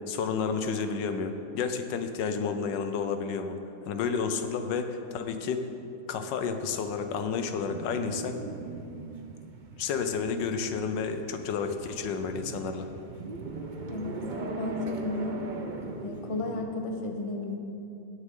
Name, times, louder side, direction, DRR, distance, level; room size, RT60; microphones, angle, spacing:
voice 1, 0.1-3.6 3.9-5.7 6.1-8.4 9.8-12.9, left 5 dB, 90° left, 8 dB, 1.4 m, -31 dB
sound 1, 6.5-16.6, right 3 dB, 85° right, 0.4 m, -40 dB
voice 2, 13.9-15.4 16.0-17.5, left 2 dB, 35° left, 3 dB, 0.5 m, -33 dB
17.5 x 6.6 x 3.7 m, 2.7 s
omnidirectional pair, 1.9 m